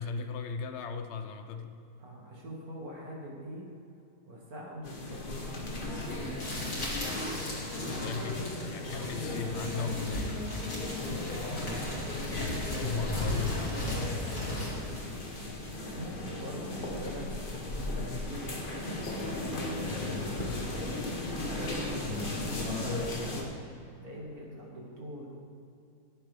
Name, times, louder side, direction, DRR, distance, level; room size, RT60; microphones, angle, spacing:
voice 1, 0.0-1.8 6.9-7.7 8.0-10.4 12.7-15.4, left 5 dB, 55° left, 7 dB, 0.8 m, -38 dB
voice 2, 2.0-3.6 4.2-6.1 7.9-8.5 10.9-11.8 15.9-18.5 19.2-21.0 21.4-23.5 24.0-25.3, equal, 55° right, -3 dB, 2.6 m, -44 dB
sound 1, 4.8-23.4, left 2 dB, 30° left, 1.5 m, -36 dB
sound 2, 6.4-14.8, left 1 dB, 80° left, 3.4 m, -37 dB
sound 3, 13.6-23.5, equal, 25° right, 2.2 m, -51 dB
14.5 x 10.5 x 3.5 m, 2.6 s
omnidirectional pair, 1.9 m